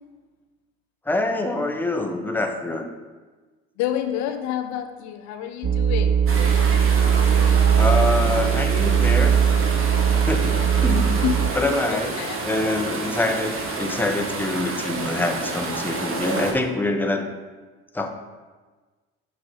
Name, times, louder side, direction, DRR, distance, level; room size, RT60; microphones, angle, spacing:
voice 1, 1.1-2.9 7.8-9.4 10.3-11.1 11.5-12.1 12.4-17.3 17.9-18.1, left 2 dB, 5° left, 4 dB, 0.8 m, -25 dB
voice 2, 3.8-6.2 11.1-12.4 13.9-14.0 14.7-14.8, left 10 dB, 70° left, 8 dB, 0.5 m, -29 dB
sound 1, 5.6-11.5, right 8 dB, 25° right, 0.4 m, -19 dB
sound 2, 6.3-16.5, right 3 dB, 45° right, 1.2 m, -29 dB
7.6 x 3.2 x 4.4 m, 1.3 s
supercardioid pair, 65°, 29 cm